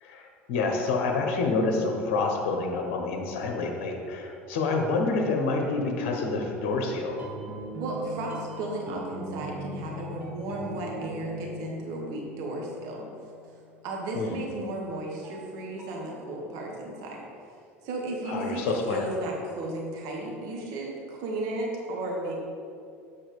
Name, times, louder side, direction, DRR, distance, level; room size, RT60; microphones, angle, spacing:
voice 1, 0.0-7.2 14.1-14.4 18.3-19.0, left 3 dB, 60° left, 2 dB, 1.1 m, -28 dB
sound 1, 7.1-13.7 15.2-16.0, right 1 dB, 20° right, 1.5 m, -40 dB
voice 2, 7.8-13.1 13.8-17.2 17.8-22.4, right 2 dB, 55° right, -1 dB, 1.4 m, -34 dB
7.7 x 4.4 x 5.0 m, 2.4 s
figure-of-eight pair, 70°, 7 cm